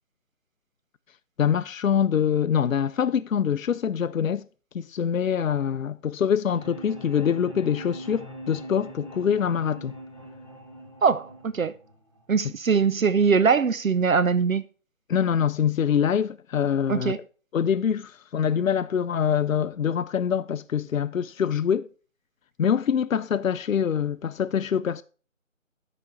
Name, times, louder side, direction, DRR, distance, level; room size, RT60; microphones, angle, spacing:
voice 1, 1.4-4.5 4.7-9.9 15.1-17.1 17.5-21.9 22.6-25.0, left 8 dB, 75° left, 0.5 m, -24 dB
sound 1, 6.5-12.5, right 1 dB, 25° right, 0.8 m, -42 dB
voice 2, 11.0-11.7 12.3-14.6 16.9-17.2, right 5 dB, 75° right, 0.6 m, -22 dB
9.7 x 5.1 x 4.5 m
figure-of-eight pair, 160°, 41 cm